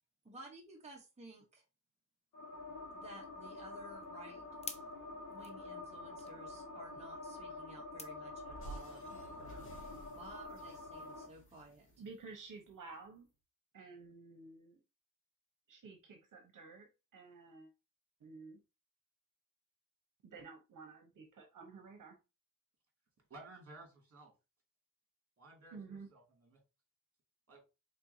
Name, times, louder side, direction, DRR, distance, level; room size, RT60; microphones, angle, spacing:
voice 1, 0.2-1.6 2.9-4.4 5.3-9.7 10.1-11.9, right 2 dB, 20° right, 1.1 m, -55 dB
sound 1, 2.3-11.3, left 2 dB, 70° left, 1.6 m, -48 dB
sound 2, 3.3-8.9, left 3 dB, 20° left, 0.6 m, -54 dB
sound 3, 8.5-12.8, right 1 dB, 40° left, 2.1 m, -53 dB
voice 2, 12.0-13.3 13.7-14.8 15.7-17.7 18.2-18.6 20.2-22.2 25.7-26.1, right 4 dB, 70° right, 1.0 m, -52 dB
voice 3, 23.3-24.3 25.4-26.6 27.5-27.6, right 2 dB, 45° right, 2.4 m, -55 dB
4.4 x 4.2 x 2.7 m
wide cardioid pair, 135°, 33 cm